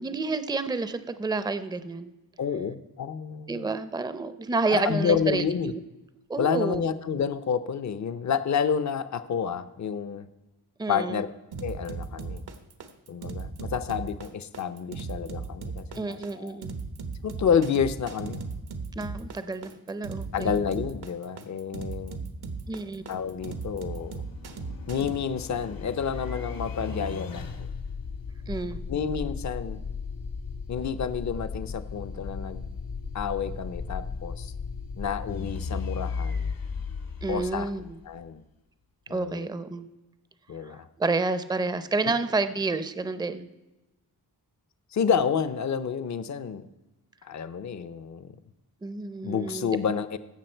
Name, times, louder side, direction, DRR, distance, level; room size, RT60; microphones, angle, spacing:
voice 1, 0.0-2.1 3.5-5.8 6.3-6.8 10.8-11.2 16.0-16.7 19.0-20.5 22.7-23.0 28.5-28.8 37.2-38.0 39.1-39.9 40.7-43.5 48.8-49.7, right 3 dB, 10° right, 12 dB, 0.5 m, -29 dB
voice 2, 2.4-3.7 4.7-5.7 6.4-10.3 10.9-11.3 11.6-12.4 13.1-16.6 17.2-18.4 20.3-22.2 23.1-24.2 24.9-27.7 28.9-29.8 30.7-32.6 33.1-34.5 35.0-36.5 37.3-37.7 38.0-38.4 39.1-39.5 40.5-40.9 44.9-46.7 47.2-48.3 49.2-50.2, left 7 dB, 45° left, 14 dB, 0.6 m, -29 dB
sound 1, 11.5-25.2, right 4 dB, 80° right, 1.2 m, -37 dB
sound 2, 22.4-38.3, left 5 dB, 65° left, 1.2 m, -36 dB
16.0 x 5.9 x 4.4 m, 1.0 s
wide cardioid pair, 100°, 38 cm